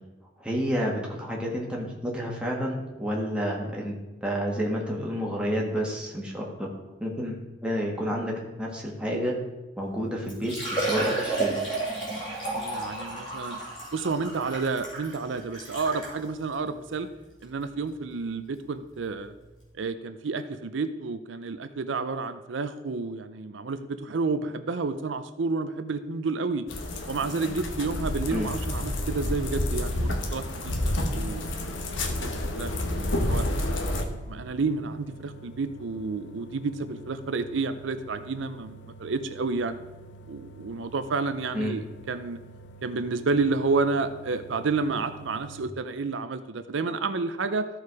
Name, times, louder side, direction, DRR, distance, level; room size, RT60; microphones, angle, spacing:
voice 1, 0.4-3.9 4.2-6.7 7.0-9.4 9.8-11.6 28.3-28.5 41.5-41.8, equal, 5° right, -2 dB, 1.5 m, -30 dB
Liquid, 9.8-9.9 10.3-16.2 16.9-17.0 17.4-17.5 19.2-19.3 19.4-19.5, right 2 dB, 30° left, 3.4 m, -31 dB
voice 2, 12.6-13.6 13.9-17.1 17.4-19.3 19.7-26.7 27.1-33.5 34.3-39.8 40.3-42.4 42.8-47.7, right 4 dB, 80° right, 10 dB, 0.5 m, -30 dB
sound 1, 26.7-34.0, left 1 dB, 90° left, 1.1 m, -29 dB
sound 2, 30.1-45.7, right 2 dB, 70° left, 0.6 m, -48 dB
14.0 x 4.7 x 4.7 m, 1.1 s
head